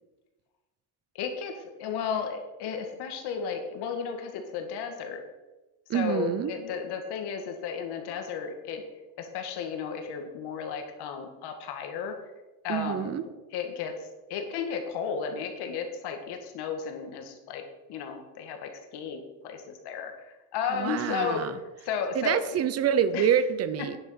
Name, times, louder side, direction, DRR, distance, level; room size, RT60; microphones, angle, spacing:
voice 1, 1.1-5.3 5.9-8.8 9.2-12.2 12.6-17.6 17.9-21.4 21.8-22.6 23.1-23.3, left 6 dB, 65° left, 4 dB, 2.0 m, -34 dB
voice 2, 5.9-6.5 12.7-13.2 20.7-21.6 22.1-24.0, right 9 dB, 35° right, 13 dB, 0.7 m, -26 dB
9.6 x 7.3 x 5.7 m, 1.1 s
cardioid pair, 145°, 43 cm